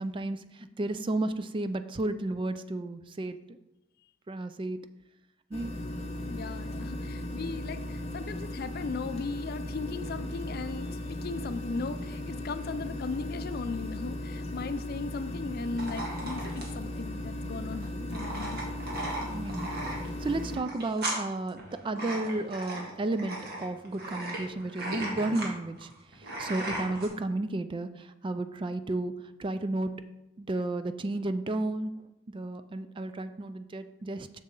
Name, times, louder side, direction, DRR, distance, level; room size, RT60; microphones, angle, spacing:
voice 1, 0.0-3.6 4.3-4.9 5.5-5.7 19.3-19.7 20.2-29.1 29.4-29.9 30.4-31.9 32.3-34.4, right 2 dB, 25° right, 11 dB, 0.3 m, -33 dB
sound 1, 5.5-20.6, left 1 dB, 30° left, 1.0 m, -37 dB
voice 2, 6.3-18.6, left 4 dB, 50° left, 12 dB, 0.4 m, -37 dB
sound 2, 15.8-27.1, right 1 dB, 55° right, 1.6 m, -37 dB
7.1 x 6.6 x 3.8 m, 0.94 s
head